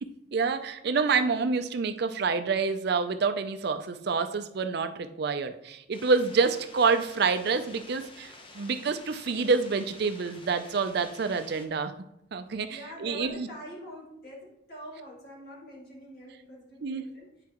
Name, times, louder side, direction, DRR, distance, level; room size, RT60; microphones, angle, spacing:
voice 1, 0.0-11.9 12.3-13.5 16.8-17.0, right 4 dB, 55° right, 9 dB, 0.4 m, -27 dB
sound 1, 5.9-11.7, left 2 dB, 25° left, 0.8 m, -50 dB
voice 2, 12.7-17.3, equal, 50° left, -4 dB, 2.3 m, -44 dB
9.7 x 4.6 x 3.0 m, 0.81 s
head